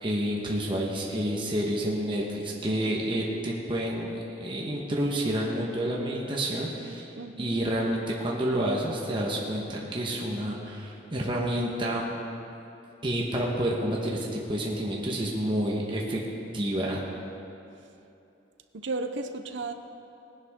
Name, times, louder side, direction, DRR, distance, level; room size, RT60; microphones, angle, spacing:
voice 1, 0.0-7.1 7.4-12.1 13.0-16.2 16.5-17.1, right 1 dB, 25° right, -3 dB, 1.3 m, -29 dB
voice 2, 7.1-7.6 18.7-19.7, right 3 dB, 75° right, 8 dB, 0.7 m, -34 dB
19.0 x 10.5 x 3.7 m, 2.8 s
head